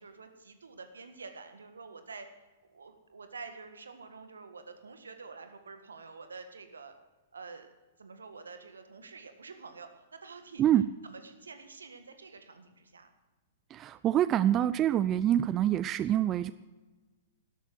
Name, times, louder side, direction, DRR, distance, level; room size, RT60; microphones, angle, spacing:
voice 1, 0.0-2.4 2.7-6.9 7.3-7.7 8.0-10.8 11.0-13.1, right 4 dB, 75° right, 8 dB, 1.7 m, -48 dB
voice 2, 13.7-16.5, right 11 dB, 30° right, 15 dB, 0.4 m, -26 dB
12.5 x 12.5 x 6.0 m, 1.2 s
figure-of-eight pair, 105°, 0 cm